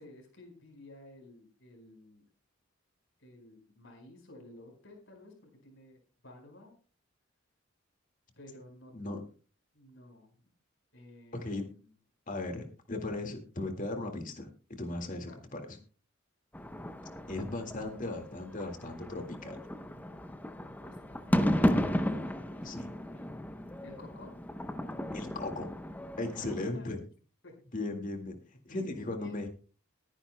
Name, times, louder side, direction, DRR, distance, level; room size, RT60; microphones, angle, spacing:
voice 1, 0.0-2.2 3.2-6.7 8.4-8.9 9.7-10.3 10.9-11.9 15.3-15.4 20.8-22.0 23.1-23.5 23.8-24.3 26.4-26.9 27.4-27.5 28.7-29.4, left 1 dB, 60° left, 3 dB, 4.7 m, -53 dB
voice 2, 11.3-11.7 12.3-15.6 17.3-19.6 22.6-22.9 25.1-25.7 26.2-27.0 27.7-28.4 28.7-29.5, left 2 dB, 40° left, 5 dB, 1.9 m, -37 dB
sound 1, 16.5-26.7, equal, 10° left, 0.7 m, -34 dB
21.5 x 10.0 x 2.2 m, 0.37 s
head